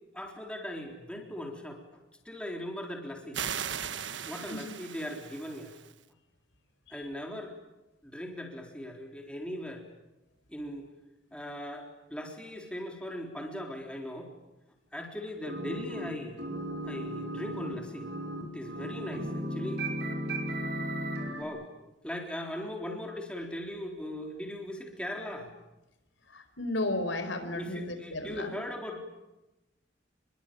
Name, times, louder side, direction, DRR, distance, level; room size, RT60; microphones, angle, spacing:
voice 1, 0.1-1.8 2.2-3.4 4.2-5.8 6.9-7.5 8.0-9.9 10.5-10.9 11.3-14.3 14.9-16.4 16.8-18.1 18.5-19.8 21.4-21.7 22.0-25.5 27.5-29.0, left 1 dB, 5° left, 2 dB, 3.9 m, -39 dB
sound 1, 3.3-5.9, right 8 dB, 80° right, 1.3 m, -38 dB
sound 2, 15.5-16.1 16.4-21.4, right 1 dB, 60° right, 5.8 m, -35 dB
voice 2, 26.3-28.5, left 2 dB, 85° left, 9 dB, 4.8 m, -33 dB
30.0 x 22.5 x 8.9 m, 0.98 s
head